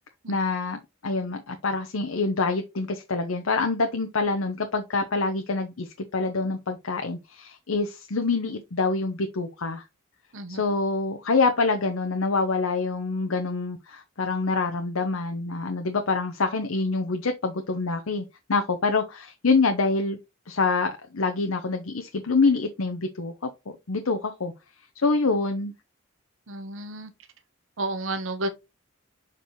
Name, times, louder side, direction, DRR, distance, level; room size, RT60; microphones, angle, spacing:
voice 1, 0.3-9.8 10.5-20.2 20.5-24.5 25.0-25.7, left 3 dB, 90° left, 0.8 m, -26 dB
voice 2, 26.5-27.1 27.8-28.5, right 2 dB, 65° right, 0.9 m, -31 dB
6.8 x 4.9 x 3.1 m
head